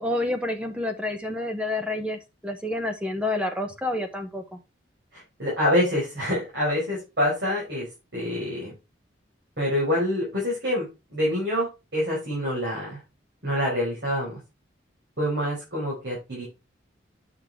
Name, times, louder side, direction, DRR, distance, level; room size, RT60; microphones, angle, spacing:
voice 1, 0.0-4.6, left 1 dB, 5° right, 6 dB, 0.7 m, -29 dB
voice 2, 5.1-7.9 8.1-8.7 9.6-13.0 13.4-14.4 15.2-16.4, left 1 dB, 60° right, -4 dB, 4.9 m, -26 dB
8.7 x 6.2 x 3.5 m, 0.26 s
head